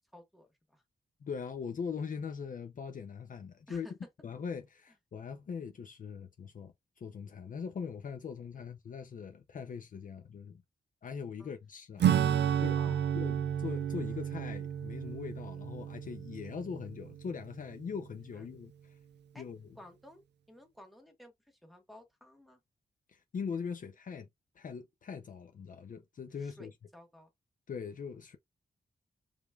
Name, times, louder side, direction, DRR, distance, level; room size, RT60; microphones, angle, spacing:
voice 1, 0.1-0.8 3.7-3.9 8.6-8.7 11.4-11.5 12.8-13.2 18.3-18.4 19.3-19.4 19.7-22.6 26.4-27.3, left 1 dB, ahead, 1.4 m, -55 dB
voice 2, 1.2-3.9 4.2-10.6 11.0-12.1 12.6-18.9 19.4-19.8 23.1-24.3 24.6-26.7 27.7-28.4, left 6 dB, 50° left, 0.5 m, -41 dB
Acoustic guitar / Strum, 12.0-17.9, right 9 dB, 80° right, 0.4 m, -32 dB
5.1 x 3.3 x 2.3 m
wide cardioid pair, 130°, 18 cm